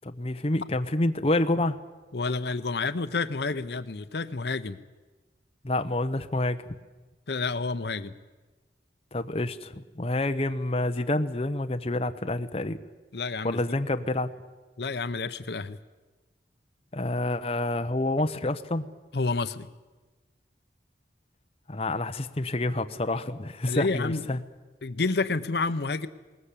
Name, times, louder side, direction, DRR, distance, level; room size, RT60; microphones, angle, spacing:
voice 1, 0.0-1.8 5.6-6.7 9.1-12.8 13.4-14.3 16.9-18.9 21.7-24.4, left 2 dB, 35° left, 8 dB, 0.8 m, -28 dB
voice 2, 2.1-4.8 7.3-8.1 13.1-13.6 14.8-15.8 19.1-19.7 23.7-24.4 24.8-26.1, left 3 dB, 70° left, 12 dB, 0.8 m, -29 dB
20.5 x 19.5 x 8.4 m, 1.2 s
head